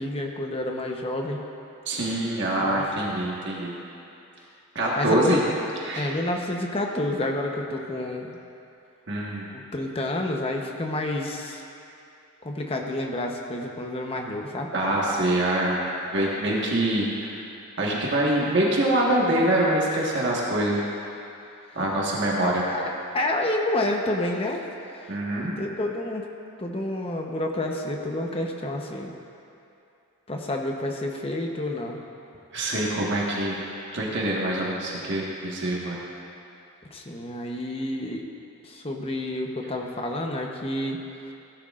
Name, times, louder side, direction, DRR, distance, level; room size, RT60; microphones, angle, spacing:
voice 1, 0.0-1.4 2.6-2.8 5.0-5.4 6.0-8.4 9.5-11.6 12.4-14.7 22.4-25.1 25.6-26.2 26.6-29.1 30.3-32.0 36.9-38.2 38.6-41.0, left 1 dB, 25° left, 1 dB, 0.9 m, -29 dB
voice 2, 1.8-3.7 4.7-5.4 5.8-6.1 9.1-9.5 14.7-15.8 16.1-17.3 17.8-20.8 21.7-22.6 25.1-25.6 32.5-33.6 33.9-36.0, right 1 dB, 50° right, -4 dB, 1.5 m, -24 dB
17.5 x 11.5 x 2.5 m, 2.7 s
head